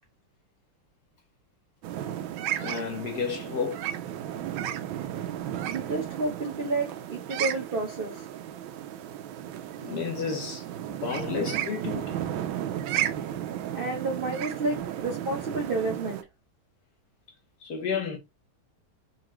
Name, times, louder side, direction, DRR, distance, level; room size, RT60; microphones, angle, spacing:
sound 1, 1.8-16.2, right 11 dB, 80° right, 1.3 m, -34 dB
voice 1, 2.6-3.9 9.8-12.2 17.6-18.2, left 6 dB, 65° left, 1.0 m, -32 dB
voice 2, 5.6-8.2 13.7-16.3, right 3 dB, 55° right, 0.6 m, -30 dB
3.8 x 2.9 x 3.1 m
omnidirectional pair, 2.2 m